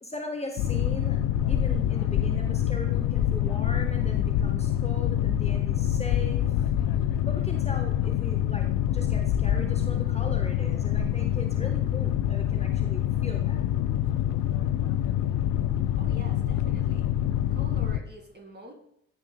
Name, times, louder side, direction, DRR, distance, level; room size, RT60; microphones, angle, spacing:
voice 1, 0.0-1.2 1.5-6.5 7.3-13.6, left 2 dB, 15° left, 3 dB, 1.1 m, -39 dB
Boat Water vehicle, 0.6-18.0, left 11 dB, 60° left, 0.6 m, -26 dB
voice 2, 16.0-17.1 17.5-18.7, equal, 25° right, 5 dB, 2.0 m, -45 dB
13.5 x 5.6 x 2.2 m, 0.74 s
figure-of-eight pair, 40°, 37 cm